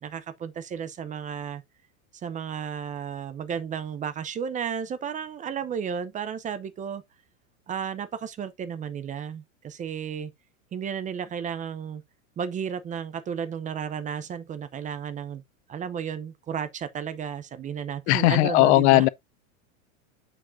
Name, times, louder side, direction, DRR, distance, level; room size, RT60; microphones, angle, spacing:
voice 1, 0.0-1.6 2.2-7.0 7.7-10.3 10.7-12.0 12.4-15.4 15.7-19.1, right 7 dB, 20° right, 0.6 m, -33 dB
voice 2, 18.1-19.1, left 19 dB, 55° left, 0.5 m, -18 dB
8.6 x 4.8 x 2.5 m
supercardioid pair, 130°, 42 cm